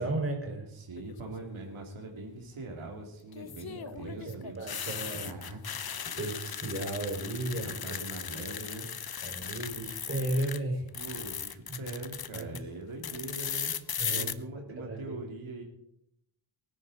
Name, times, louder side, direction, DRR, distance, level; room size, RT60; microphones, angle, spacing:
voice 1, 0.0-0.7 3.7-5.3 6.2-8.0 9.2-10.9 11.7-12.0 12.3-12.6 14.0-15.2, right 2 dB, 30° right, 0 dB, 5.5 m, -35 dB
voice 2, 0.7-4.8 5.2-5.8 7.5-8.9 10.9-13.7 14.1-15.6, right 2 dB, 90° right, 1 dB, 2.7 m, -42 dB
sound 1, 1.0-1.5 3.3-10.6 10.9-12.6 13.0-14.3, left 8 dB, 50° left, 0.9 m, -37 dB
23.0 x 10.0 x 4.2 m, 0.77 s
wide cardioid pair, 90°, 47 cm